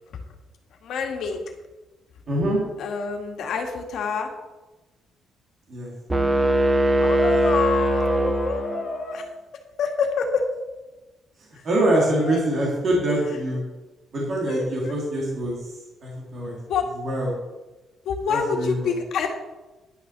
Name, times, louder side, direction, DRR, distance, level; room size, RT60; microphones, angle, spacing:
voice 1, 0.8-1.4 2.8-4.3 7.0-9.2 9.8-10.4 12.2-12.4 14.5-14.9 16.7-16.9 18.1-19.3, left 5 dB, 60° left, 3 dB, 1.9 m, -27 dB
voice 2, 2.3-2.6 5.7-5.9 11.6-13.6 14.1-15.6 16.0-16.6 17.0-17.3 18.3-18.9, right 1 dB, 40° right, -4 dB, 3.0 m, -24 dB
sound 1, 6.1-9.1, right 1 dB, 10° right, 0.8 m, -21 dB
11.0 x 6.8 x 6.7 m, 1.1 s
cardioid pair, 170°, 0 cm